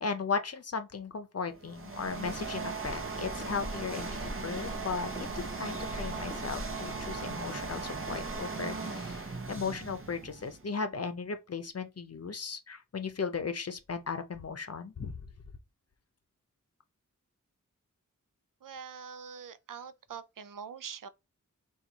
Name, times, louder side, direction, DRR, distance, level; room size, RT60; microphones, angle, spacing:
voice 1, 0.0-15.1, left 5 dB, 50° left, 0.6 m, -36 dB
sound 1, 1.5-10.7, right 4 dB, 40° right, 0.9 m, -38 dB
Walk footsteps, 2.1-8.4, equal, 20° left, 1.3 m, -44 dB
voice 2, 18.6-21.1, right 7 dB, 85° right, 0.5 m, -44 dB
4.4 x 2.4 x 3.9 m
wide cardioid pair, 70°, 32 cm